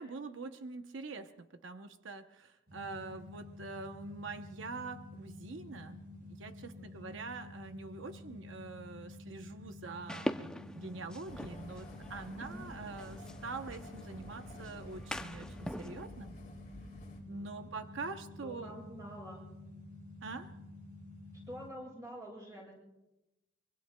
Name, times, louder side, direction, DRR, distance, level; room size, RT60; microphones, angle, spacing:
voice 1, 0.0-6.0 6.3-16.3 17.3-18.7 20.2-20.5, right 3 dB, 90° right, 7 dB, 0.8 m, -45 dB
sound 1, 2.7-21.7, left 2 dB, 50° right, 5.4 m, -50 dB
voice 2, 6.8-7.1 12.3-12.7 17.1-17.7 18.4-19.4 21.5-22.7, equal, 20° right, -3 dB, 6.8 m, -48 dB
sound 2, 10.1-16.1, equal, 5° left, 0.5 m, -43 dB
sound 3, 11.3-17.2, left 1 dB, 40° left, 1.9 m, -51 dB
24.0 x 24.0 x 2.2 m, 0.97 s
head